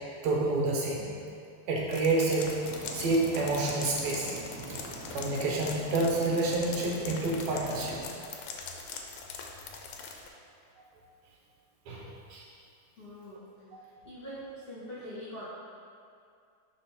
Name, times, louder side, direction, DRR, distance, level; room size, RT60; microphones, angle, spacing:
voice 1, 0.2-1.1 1.7-2.5 2.9-4.3 4.7-4.8 5.1-8.0 11.9-12.5, right 2 dB, 75° right, -3 dB, 2.1 m, -28 dB
sound 1, 1.9-10.3, left 5 dB, 80° left, 1.8 m, -42 dB
sound 2, 2.6-8.1, right 2 dB, 60° right, 2.0 m, -43 dB
voice 2, 13.0-13.4 13.8-15.4, equal, 40° left, -11 dB, 1.5 m, -43 dB
10.5 x 3.9 x 2.9 m, 2.3 s
omnidirectional pair, 3.4 m